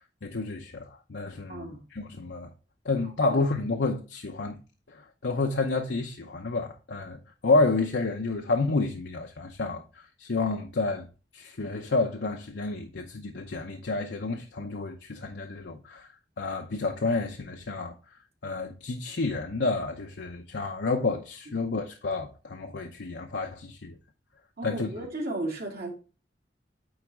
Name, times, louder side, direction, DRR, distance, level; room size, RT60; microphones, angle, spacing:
voice 1, 0.2-2.5 2.8-4.6 4.9-11.1 11.3-16.1 16.4-17.9 18.4-24.0 24.6-24.9, left 3 dB, 85° left, 0.7 m, -30 dB
voice 2, 1.5-1.8 3.0-3.4 21.5-21.6 24.6-25.9, right 1 dB, 65° right, 2.6 m, -35 dB
9.5 x 4.0 x 3.5 m
head